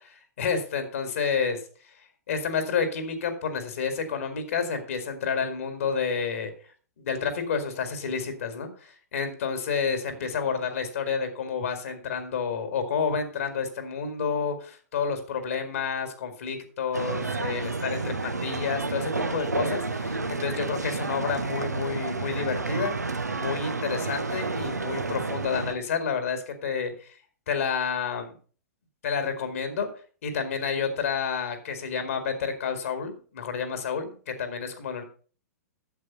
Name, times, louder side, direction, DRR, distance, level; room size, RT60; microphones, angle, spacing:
voice 1, 0.4-1.6 2.3-6.5 7.0-23.0 23.3-27.1 27.5-28.4 29.0-29.9 30.2-35.0, left 6 dB, 55° left, 8 dB, 2.1 m, -30 dB
sound 1, 16.9-25.7, right 3 dB, 80° right, 1.1 m, -30 dB
8.2 x 7.7 x 5.4 m, 0.39 s
figure-of-eight pair, 105°, 9 cm